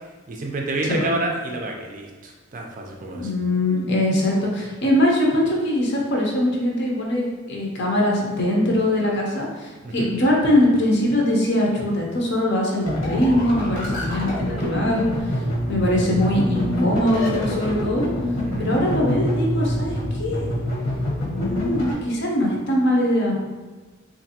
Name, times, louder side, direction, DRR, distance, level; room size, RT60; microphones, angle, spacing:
voice 1, 0.3-3.3 9.8-10.1 18.4-18.7, right 2 dB, 40° right, 0 dB, 0.4 m, -29 dB
voice 2, 3.1-18.1 18.6-20.5 21.4-23.4, left 1 dB, 55° left, -2 dB, 0.6 m, -22 dB
sound 1, 12.8-21.9, left 1 dB, 80° left, 1.1 m, -26 dB
3.3 x 2.5 x 2.7 m, 1.3 s
head